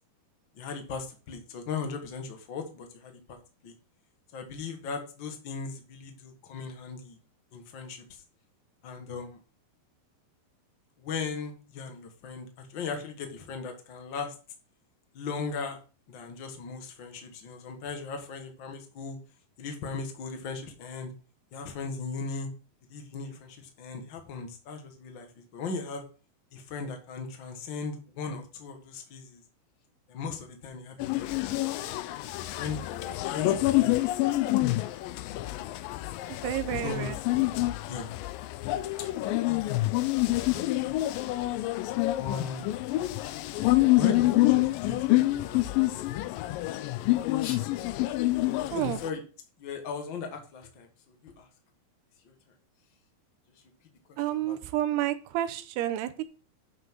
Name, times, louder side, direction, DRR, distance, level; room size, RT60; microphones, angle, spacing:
voice 1, 0.5-3.4 3.6-3.7 4.3-7.2 7.5-8.2 8.8-9.4 11.0-14.3 15.1-15.8 16.1-19.2 19.6-21.1 21.5-22.5 22.9-26.0 26.5-29.4 30.1-31.6 32.3-35.8 36.2-36.4 36.8-37.1 37.9-38.1 39.1-39.9 40.8-41.0 42.2-42.8 44.0-45.8 47.4-47.6 48.7-49.2 49.6-51.5 52.2-52.3 54.3-54.5, left 5 dB, 65° left, 4 dB, 1.1 m, -38 dB
sound 1, 31.0-49.1, left 17 dB, 90° left, 2.0 m, -27 dB
voice 2, 36.3-37.2 48.7-49.0 54.2-56.2, right 13 dB, 85° right, 10 dB, 2.7 m, -30 dB
9.2 x 5.9 x 4.6 m, 0.36 s
omnidirectional pair, 4.6 m